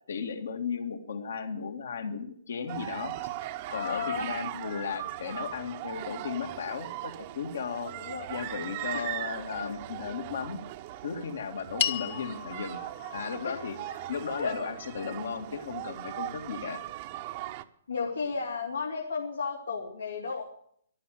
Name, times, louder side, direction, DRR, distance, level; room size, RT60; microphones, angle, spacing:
voice 1, 0.1-3.1 3.7-7.9 8.3-10.6 11.0-12.8 13.1-13.8 14.1-16.8, left 6 dB, 70° left, 6 dB, 2.1 m, -35 dB
sound 1, 2.7-17.6, right 14 dB, 40° right, 1.0 m, -39 dB
voice 2, 3.7-4.3 8.0-8.2 8.9-9.1 9.6-9.8 13.4-13.6 14.4-14.5 17.9-20.4, left 5 dB, 90° left, -2 dB, 3.2 m, -33 dB
sound 2, 11.8-16.3, left 9 dB, 50° left, 1.3 m, -37 dB
14.0 x 12.0 x 7.8 m, 0.65 s
hypercardioid pair, 135°, 0 cm